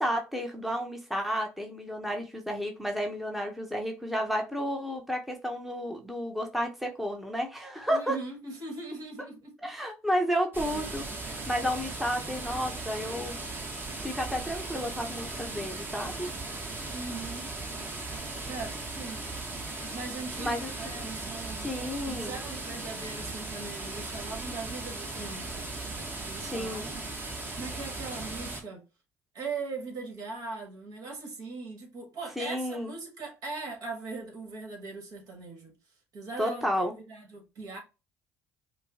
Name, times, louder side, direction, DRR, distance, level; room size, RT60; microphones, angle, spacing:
voice 1, 0.0-8.2 9.6-13.4 14.0-16.3 20.4-21.0 21.6-22.4 26.4-26.8 32.4-32.9 36.4-36.9, equal, ahead, 1.0 m, -32 dB
voice 2, 7.9-9.7 10.7-11.6 16.9-17.5 18.3-19.2 19.8-25.7 26.2-27.0 27.6-28.8 29.3-35.7 36.1-37.8, right 3 dB, 55° right, 1.8 m, -40 dB
sound 1, 10.5-28.6, right 2 dB, 30° right, 1.4 m, -38 dB
5.2 x 2.2 x 2.8 m
hypercardioid pair, 60°, 7 cm